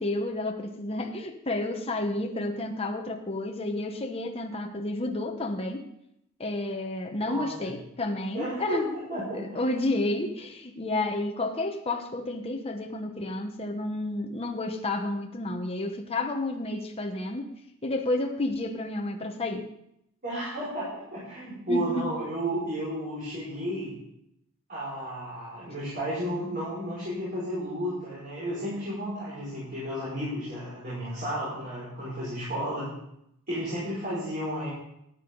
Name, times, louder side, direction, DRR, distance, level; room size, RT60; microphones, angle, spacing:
voice 1, 0.0-5.9 6.4-8.9 9.3-17.5 17.8-19.7 21.7-22.1, left 2 dB, 25° left, 3 dB, 1.0 m, -31 dB
voice 2, 7.2-7.7 8.3-9.6 20.2-23.9 24.7-32.9 33.5-34.7, equal, 40° right, -9 dB, 5.5 m, -33 dB
13.5 x 10.0 x 3.9 m, 0.78 s
head